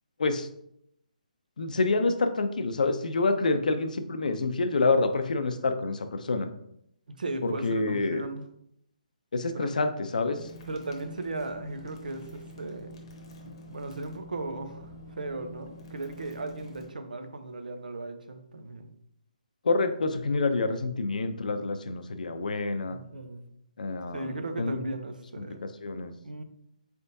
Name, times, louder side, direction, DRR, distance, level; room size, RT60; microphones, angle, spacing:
voice 1, 1.6-6.5 7.4-8.3 9.3-10.4 19.6-23.0 23.8-24.8 25.5-25.6 25.8-26.1, left 3 dB, 70° left, 8 dB, 0.5 m, -27 dB
voice 2, 7.1-8.5 9.5-9.7 10.7-12.9 13.4-18.9 22.9-23.4 24.1-25.6 26.2-26.4, right 2 dB, 75° right, 7 dB, 0.7 m, -37 dB
sound 1, 10.4-16.9, left 1 dB, 40° left, 0.9 m, -47 dB
4.3 x 3.4 x 2.6 m, 0.75 s
hypercardioid pair, 155°, 5 cm